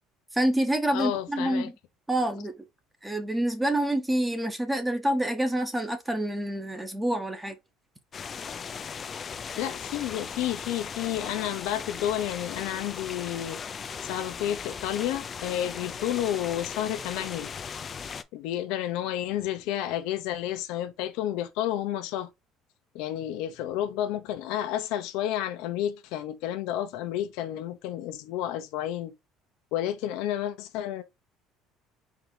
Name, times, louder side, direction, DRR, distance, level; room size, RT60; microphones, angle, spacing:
voice 1, 0.3-1.7 2.1-2.5 3.0-7.6, right 1 dB, 5° right, 0.8 m, -27 dB
voice 2, 0.9-1.7 9.6-13.6 14.0-17.5 18.3-22.3 22.9-29.2 29.7-31.0, left 12 dB, 80° left, 0.7 m, -31 dB
sound 1, 8.1-18.2, left 6 dB, 30° left, 0.4 m, -38 dB
4.6 x 2.8 x 3.7 m
cardioid pair, 145°, 0 cm